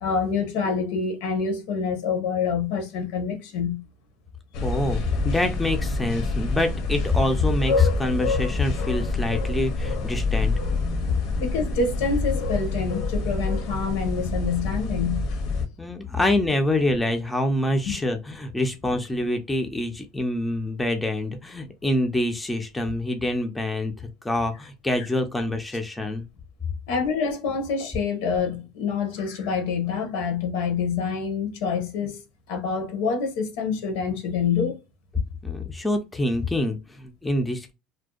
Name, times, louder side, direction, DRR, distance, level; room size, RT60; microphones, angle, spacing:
voice 1, 0.0-3.8 11.4-15.3 17.9-18.0 26.9-32.2 32.5-34.8, left 5 dB, 85° left, 0.9 m, -26 dB
sound 1, 4.5-15.7, left 3 dB, 55° left, 0.6 m, -27 dB
voice 2, 4.6-10.5 15.8-26.2 35.4-37.7, left 2 dB, 5° left, 0.4 m, -26 dB
2.5 x 2.1 x 2.3 m
cardioid pair, 160°, 0 cm